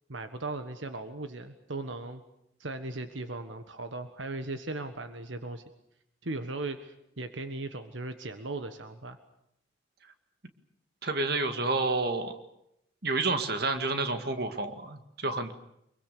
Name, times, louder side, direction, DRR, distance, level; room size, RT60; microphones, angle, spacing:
voice 1, 0.1-2.2 2.6-5.6 6.2-9.2, right 2 dB, 75° right, 8 dB, 1.5 m, -37 dB
voice 2, 11.0-12.3 13.0-15.5, right 3 dB, 55° right, 8 dB, 2.0 m, -29 dB
25.0 x 23.5 x 6.9 m, 0.79 s
head